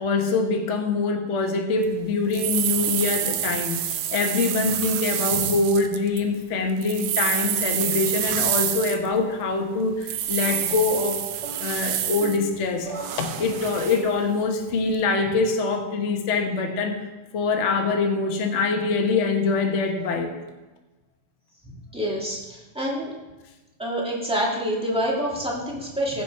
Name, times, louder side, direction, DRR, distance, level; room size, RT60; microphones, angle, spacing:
voice 1, 0.0-11.2 11.6-16.9 17.3-20.3, left 3 dB, 60° left, 3 dB, 0.7 m, -24 dB
sound 1, 1.8-1.9 2.3-6.2 6.7-9.2 10.0-12.4 12.9-14.1 14.7-14.8, right 11 dB, 75° right, 1.7 m, -27 dB
sound 2, 10.4-13.9, right 3 dB, 50° right, 2.1 m, -40 dB
voice 2, 21.6-23.1 23.8-26.2, equal, ahead, -4 dB, 1.6 m, -27 dB
15.5 x 6.1 x 4.7 m, 1.1 s
omnidirectional pair, 3.3 m